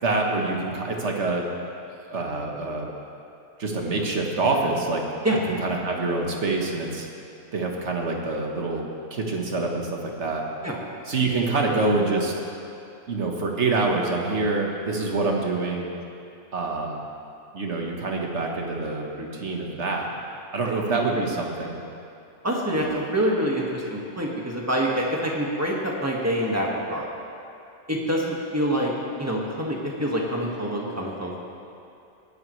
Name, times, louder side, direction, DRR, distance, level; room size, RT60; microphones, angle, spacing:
voice 1, 0.0-1.5 2.0-2.9 3.6-5.0 5.5-7.1 7.5-10.4 11.1-12.3 13.1-15.9 16.5-17.0 17.5-20.1 20.5-21.7, right 3 dB, 65° right, 0 dB, 1.6 m, -26 dB
voice 2, 20.6-21.0 22.4-27.1 27.9-28.9 29.2-31.4, right 1 dB, 10° right, -3 dB, 1.7 m, -26 dB
19.5 x 11.0 x 3.2 m, 2.7 s
omnidirectional pair, 1.3 m